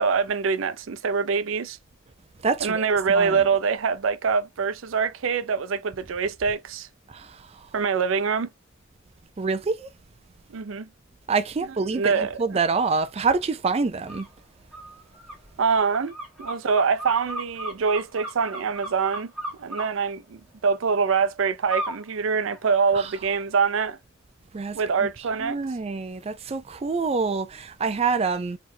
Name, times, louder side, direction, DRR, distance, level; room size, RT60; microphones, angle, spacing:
voice 1, 0.0-1.8 2.6-6.9 7.7-8.5 10.5-10.9 11.9-12.4 15.6-19.3 19.6-24.0 24.7-25.6, right 5 dB, 90° right, 0.5 m, -24 dB
voice 2, 2.4-2.8 3.1-3.5 7.1-7.7 9.4-9.9 11.3-14.3 22.9-23.1 24.5-25.1 25.4-28.6, right 4 dB, 30° right, 0.4 m, -26 dB
sound 1, 14.1-14.3 14.7-19.9 21.7-22.0 22.4-23.2, right 1 dB, ahead, 1.5 m, -35 dB
4.1 x 3.1 x 2.7 m
head